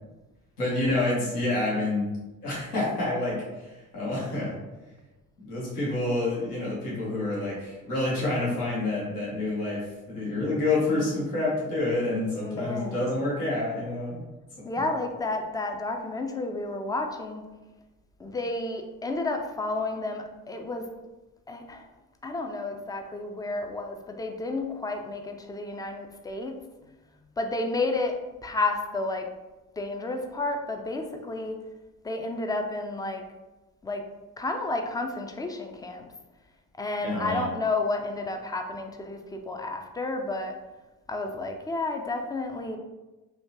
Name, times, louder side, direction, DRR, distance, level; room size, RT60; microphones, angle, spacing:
voice 1, 0.6-2.1 2.4-4.5 5.4-14.2 37.0-37.5, left 2 dB, 85° left, -7 dB, 1.2 m, -28 dB
voice 2, 12.3-13.1 14.7-17.4 18.2-20.9 21.5-21.9 22.2-26.6 27.4-28.2 28.4-29.3 29.8-31.6 32.0-33.2 33.8-34.0 34.4-36.1 36.8-40.6 41.1-42.8, left 2 dB, 10° left, 4 dB, 0.4 m, -31 dB
3.5 x 2.8 x 2.8 m, 1.1 s
figure-of-eight pair, 40°, 45 cm